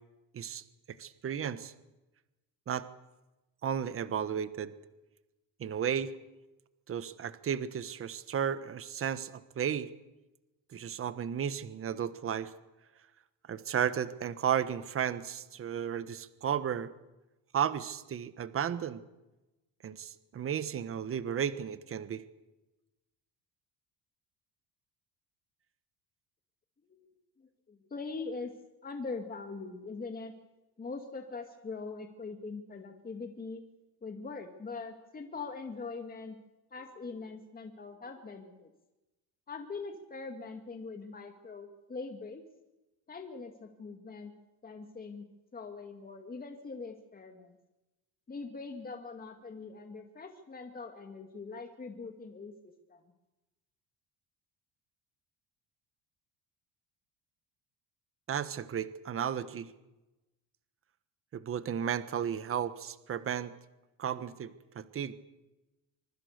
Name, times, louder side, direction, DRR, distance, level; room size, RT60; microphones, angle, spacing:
voice 1, 0.3-1.7 2.7-2.9 3.6-4.7 5.6-6.1 6.9-9.9 10.7-12.5 13.5-16.9 17.5-19.0 19.8-22.2 58.3-59.7 61.3-63.5 64.0-65.1, right 8 dB, 35° right, 13 dB, 1.3 m, -34 dB
voice 2, 27.4-28.5 28.8-30.3 30.8-33.6 34.0-36.4 36.7-38.7 39.5-42.4 43.1-44.3 44.6-45.3 45.5-47.6 48.3-53.0, left 4 dB, 25° left, 5 dB, 2.3 m, -42 dB
25.0 x 23.5 x 6.7 m, 1.0 s
cardioid pair, 130°, 38 cm